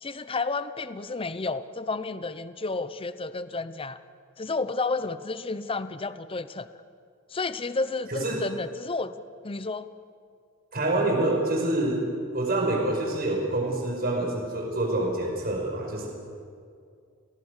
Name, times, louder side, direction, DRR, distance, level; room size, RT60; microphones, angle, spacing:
voice 1, 0.0-4.0 4.4-6.7 7.3-9.1 9.4-9.9, left 3 dB, 25° left, 13 dB, 0.7 m, -31 dB
voice 2, 8.1-8.4 10.7-12.0 12.3-16.1, right 2 dB, 50° right, 0 dB, 5.2 m, -26 dB
29.5 x 18.5 x 6.6 m, 2.3 s
head